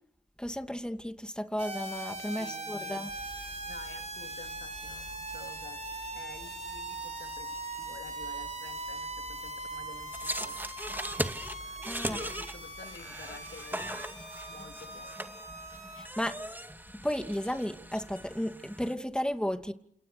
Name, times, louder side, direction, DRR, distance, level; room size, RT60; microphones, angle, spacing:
voice 1, 0.4-3.1 11.9-12.2 16.0-16.4 17.0-19.7, equal, 5° left, 2.5 m, -33 dB
sound 1, 1.6-16.1, right 2 dB, 40° right, 4.5 m, -41 dB
voice 2, 2.3-3.1 3.7-5.8 6.1-7.5 7.8-10.6 12.0-14.1 14.5-15.3, left 4 dB, 85° left, 2.9 m, -50 dB
sound 2, 3.1-18.4, left 2 dB, 35° left, 5.5 m, -54 dB
sound 3, 10.1-18.9, right 1 dB, 10° right, 2.2 m, -39 dB
28.5 x 28.0 x 6.8 m
cardioid pair, 45°, 18 cm